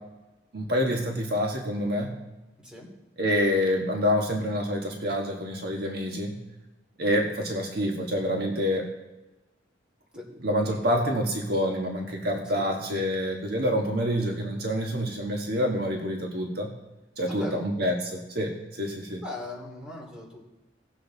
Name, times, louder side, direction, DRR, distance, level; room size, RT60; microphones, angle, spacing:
voice 1, 0.5-2.1 3.2-6.4 7.0-8.9 10.4-16.7 17.2-19.2, equal, 60° right, 1 dB, 1.5 m, -27 dB
voice 2, 17.3-17.6 19.2-20.4, left 2 dB, 5° right, -2 dB, 2.8 m, -38 dB
18.0 x 7.4 x 4.0 m, 1.1 s
head